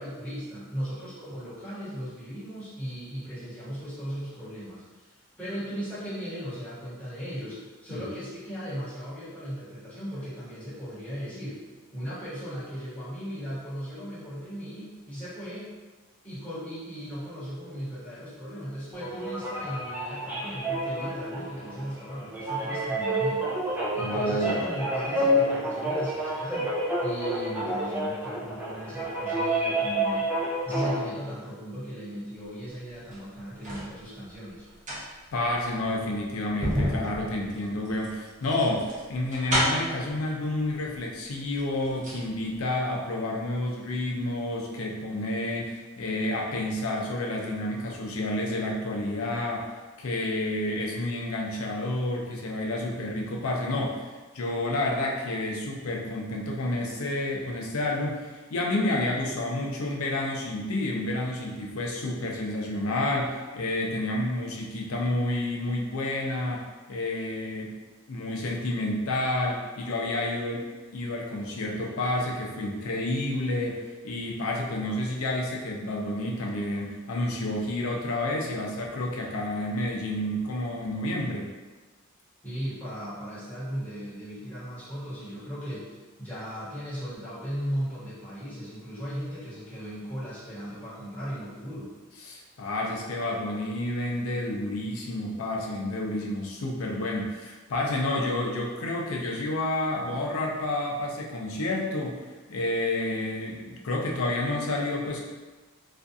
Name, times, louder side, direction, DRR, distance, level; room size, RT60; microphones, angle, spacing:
voice 1, 0.0-11.6 11.9-15.7 16.2-30.3 30.6-34.6 82.4-91.9, equal, 5° left, -13 dB, 1.0 m, -37 dB
sound 1, 18.9-31.0, right 1 dB, 10° right, 0.3 m, -29 dB
voice 2, 24.0-24.5 35.3-49.7 50.0-66.6 66.9-67.7 68.1-70.6 70.9-81.5 92.2-102.2 102.5-105.2, left 1 dB, 80° left, -1 dB, 0.5 m, -30 dB
sound 2, 32.9-33.9 34.6-40.0 41.0-41.1 41.4-42.2 42.5-42.6, equal, 35° right, 0.9 m, -31 dB
2.5 x 2.3 x 2.5 m, 1.3 s
head